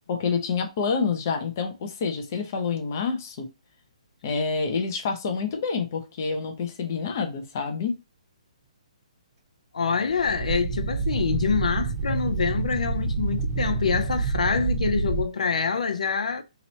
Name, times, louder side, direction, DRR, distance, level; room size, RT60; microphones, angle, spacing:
voice 1, 0.1-3.5 4.2-8.0, left 5 dB, 25° left, 0.5 m, -27 dB
voice 2, 9.7-16.4, left 5 dB, 70° left, 0.5 m, -26 dB
sound 1, 10.1-15.2, right 4 dB, 15° right, 0.8 m, -27 dB
3.0 x 2.9 x 4.1 m
hypercardioid pair, 180°, 4 cm